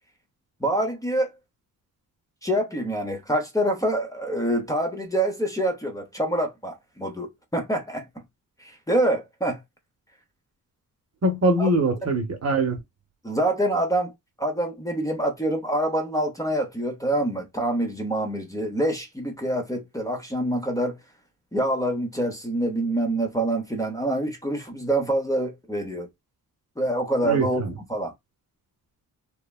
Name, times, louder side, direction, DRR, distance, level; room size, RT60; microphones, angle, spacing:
voice 1, 0.6-1.3 2.4-8.1 8.6-9.6 11.6-11.8 13.2-14.1 14.4-21.0 21.5-26.1 26.8-27.6 27.9-28.1, right 1 dB, 10° left, 0.8 m, -26 dB
voice 2, 11.2-12.8 27.2-27.7, right 1 dB, 45° right, 0.9 m, -23 dB
3.3 x 2.1 x 2.3 m
cardioid pair, 110°, 34 cm